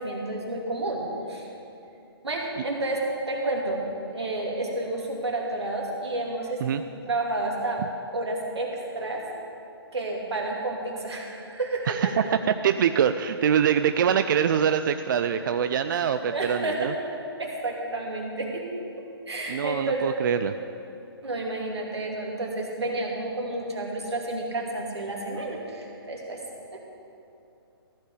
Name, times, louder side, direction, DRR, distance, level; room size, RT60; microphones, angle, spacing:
voice 1, 0.0-1.5 2.2-3.8 4.1-6.6 7.1-7.8 8.1-9.2 9.9-12.1 16.3-18.6 19.3-20.2 21.2-26.4 26.7-26.8, right 2 dB, 85° right, -1 dB, 2.7 m, -30 dB
voice 2, 11.9-16.9 19.5-20.5, right 8 dB, 50° right, 10 dB, 0.4 m, -24 dB
15.0 x 5.5 x 8.5 m, 2.8 s
hypercardioid pair, 140°, 14 cm